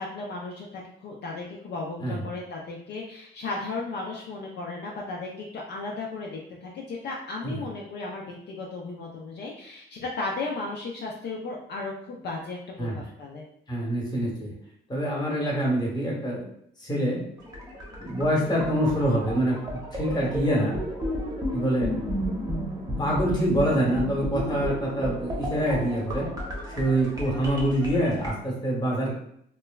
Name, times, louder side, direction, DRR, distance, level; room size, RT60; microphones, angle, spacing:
voice 1, 0.0-13.5 18.4-18.8, left 3 dB, 60° left, -2 dB, 0.4 m, -35 dB
voice 2, 13.7-14.5 14.9-16.4 16.8-17.2 18.0-19.6 19.9-20.8 21.5-22.0 23.0-26.3 26.7-29.1, right 1 dB, 20° left, -3 dB, 1.0 m, -25 dB
sound 1, 17.4-28.3, equal, 15° right, 0.8 m, -33 dB
3.0 x 2.1 x 2.3 m, 0.71 s
cardioid pair, 90°, 20 cm